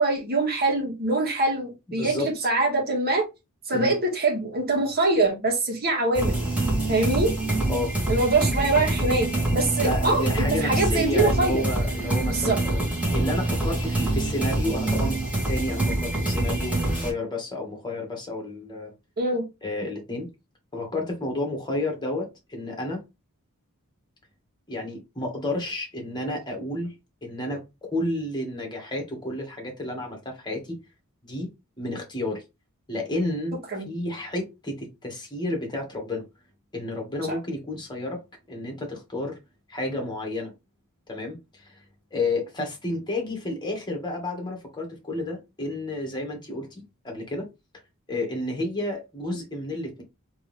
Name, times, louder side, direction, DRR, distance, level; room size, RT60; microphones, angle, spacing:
voice 1, 0.0-3.3 3.7-6.5 6.9-7.3 8.1-11.6 12.3-12.6 19.2-19.4 33.7-33.9, right 2 dB, 45° right, 1.7 m, -24 dB
voice 2, 2.0-2.3 3.7-3.9 7.7-7.9 9.8-12.8 13.1-15.2 15.5-18.9 19.6-20.3 20.7-23.0 24.7-26.9 27.2-30.8 31.2-31.5 31.8-32.4 32.9-33.6 33.8-36.2 36.7-38.2 38.5-39.4 39.7-40.5 41.1-41.8 42.1-47.5 48.1-50.0, left 1 dB, 20° left, 1.6 m, -31 dB
sound 1, 6.1-17.1, right 2 dB, 5° right, 1.9 m, -25 dB
3.6 x 3.1 x 3.3 m
head